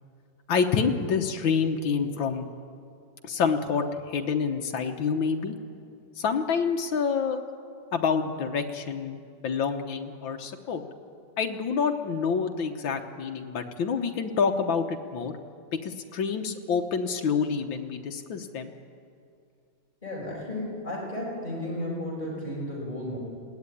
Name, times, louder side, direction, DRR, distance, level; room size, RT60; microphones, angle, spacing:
voice 1, 0.5-2.4 3.2-5.6 6.2-7.4 7.9-10.8 11.4-15.3 15.7-18.7, left 6 dB, 85° left, 4 dB, 1.9 m, -27 dB
voice 2, 20.0-23.2, left 1 dB, 20° left, -4 dB, 6.1 m, -33 dB
20.5 x 16.5 x 9.9 m, 2.4 s
omnidirectional pair, 2.1 m